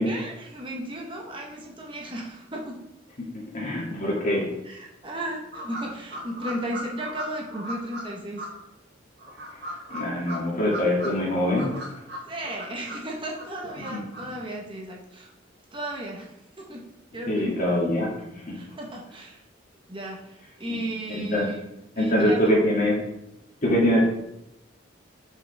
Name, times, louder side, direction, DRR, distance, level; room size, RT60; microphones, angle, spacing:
voice 1, 0.0-2.8 4.6-8.5 12.3-15.3 15.7-17.5 18.5-19.4 19.9-21.6 22.0-22.5, right 1 dB, 25° right, -1 dB, 0.9 m, -35 dB
voice 2, 3.5-4.5 9.9-11.7 13.9-14.0 17.3-18.6 20.7-20.8 21.1-21.4 22.0-22.9 23.6-24.1, left 1 dB, 45° left, -4 dB, 2.2 m, -23 dB
sound 1, 5.5-8.0 8.4-8.5 9.2-11.1 11.4-13.0 13.4-14.2, right 1 dB, 55° right, 1.6 m, -37 dB
6.7 x 5.5 x 3.3 m, 0.84 s
head